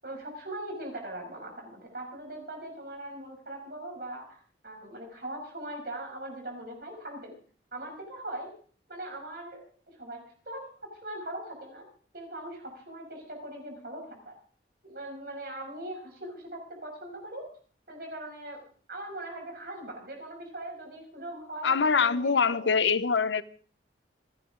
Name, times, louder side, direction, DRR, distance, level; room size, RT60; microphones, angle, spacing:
voice 1, 0.0-4.4 4.6-7.4 7.7-8.5 8.9-9.6 10.0-11.8 12.1-14.3 14.8-17.4 17.9-18.6 18.9-22.7, right 1 dB, 55° right, 2 dB, 6.2 m, -40 dB
voice 2, 21.6-23.4, left 5 dB, 80° left, 15 dB, 0.7 m, -24 dB
28.0 x 10.0 x 3.8 m, 0.44 s
head